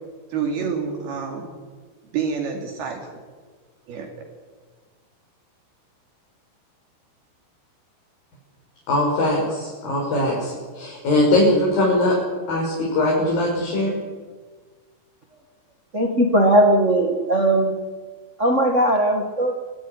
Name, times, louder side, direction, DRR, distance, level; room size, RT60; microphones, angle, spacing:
voice 1, 0.3-1.5 2.1-3.0 3.9-4.1, right 6 dB, 75° right, 1 dB, 4.7 m, -27 dB
voice 2, 8.9-12.2 12.5-14.0, left 1 dB, 65° left, -3 dB, 7.4 m, -21 dB
voice 3, 15.9-17.7 18.4-19.6, right 1 dB, 35° right, 4 dB, 1.1 m, -18 dB
27.0 x 18.5 x 9.9 m, 1.5 s
omnidirectional pair, 4.5 m